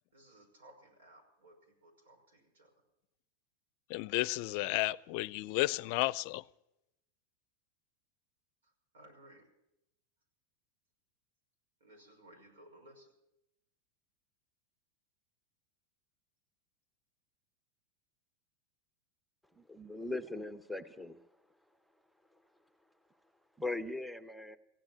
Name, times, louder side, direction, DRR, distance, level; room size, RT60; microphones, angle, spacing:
voice 1, 0.1-2.7 8.6-9.5 11.8-13.1, right 1 dB, 90° right, 5.5 m, -59 dB
voice 2, 3.9-6.4, left 20 dB, 60° left, 0.5 m, -32 dB
voice 3, 19.5-21.3 22.3-22.4 23.6-24.6, left 2 dB, ahead, 0.8 m, -40 dB
16.0 x 8.8 x 9.2 m
hypercardioid pair, 115°, 0 cm